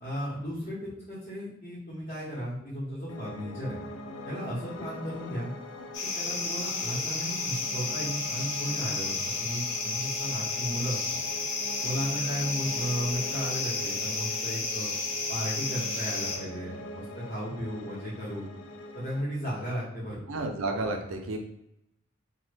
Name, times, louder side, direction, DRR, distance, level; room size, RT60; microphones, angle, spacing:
voice 1, 0.0-3.8 4.2-5.5 6.0-11.0 11.8-14.9 15.3-18.5 18.9-20.2, equal, 35° left, -8 dB, 0.8 m, -35 dB
sound 1, 2.5-3.7 5.1-5.2 5.9-7.3, left 2 dB, 20° right, 0.6 m, -51 dB
Piano, 3.1-19.2, left 2 dB, 85° left, 0.4 m, -43 dB
sound 2, 5.9-16.4, left 3 dB, 65° left, 0.7 m, -32 dB
voice 2, 20.3-21.4, right 2 dB, 85° right, 4 dB, 0.5 m, -31 dB
3.0 x 2.1 x 3.2 m, 0.80 s
head